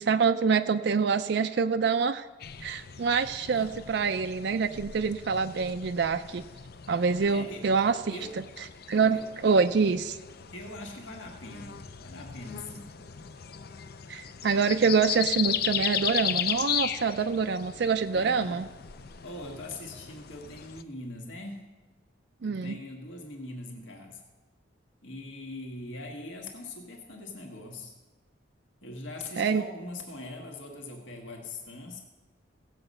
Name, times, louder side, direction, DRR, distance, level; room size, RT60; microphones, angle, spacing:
voice 1, 0.0-2.3 2.6-6.4 6.9-8.2 8.9-10.2 14.1-18.7 22.4-22.8 29.4-29.6, right 5 dB, 55° right, 8 dB, 0.4 m, -26 dB
sound 1, 2.4-20.8, left 9 dB, 50° left, 0.5 m, -36 dB
voice 2, 7.3-7.7 8.1-8.4 9.1-9.3 10.5-13.0 18.1-18.6 19.2-21.7 22.4-24.2 25.0-27.9 28.8-32.0, left 2 dB, 70° left, 1 dB, 1.7 m, -42 dB
16.5 x 7.9 x 5.4 m, 1.2 s
head